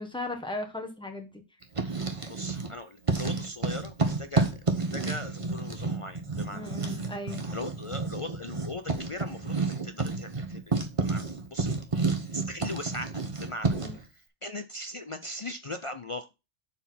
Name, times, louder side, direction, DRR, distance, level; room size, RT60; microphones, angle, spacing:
voice 1, 0.0-1.4 6.5-7.5 13.7-13.9, left 2 dB, 5° left, 3 dB, 1.4 m, -37 dB
Writing, 1.6-2.7 3.0-14.0, right 3 dB, 30° right, 1.1 m, -30 dB
voice 2, 2.3-6.7 7.5-11.7 12.1-16.3, left 1 dB, 50° left, 10 dB, 0.3 m, -39 dB
7.1 x 4.3 x 5.8 m, 0.27 s
omnidirectional pair, 1.2 m